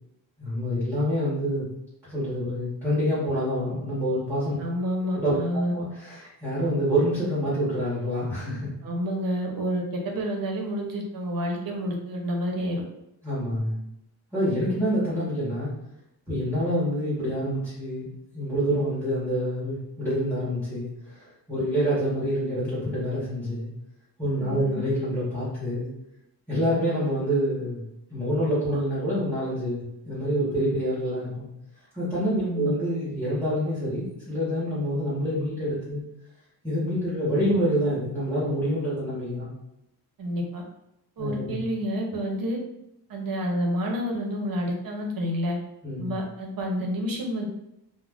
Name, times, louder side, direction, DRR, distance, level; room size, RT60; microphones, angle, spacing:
voice 1, 0.4-1.7 2.0-4.6 5.1-8.7 13.2-13.8 14.3-15.7 16.3-18.1 18.3-23.7 24.2-25.9 26.5-27.8 28.1-31.5 31.9-36.0 36.6-39.5 41.2-41.6 45.8-46.1, equal, 5° right, -11 dB, 0.9 m, -27 dB
voice 2, 4.6-5.7 8.8-12.8 24.4-24.7 32.4-32.7 40.2-40.6 41.2-42.6 43.1-45.6 46.0-47.5, equal, 55° right, 1 dB, 0.7 m, -29 dB
2.4 x 2.1 x 3.3 m, 0.82 s
wide cardioid pair, 150°, 42 cm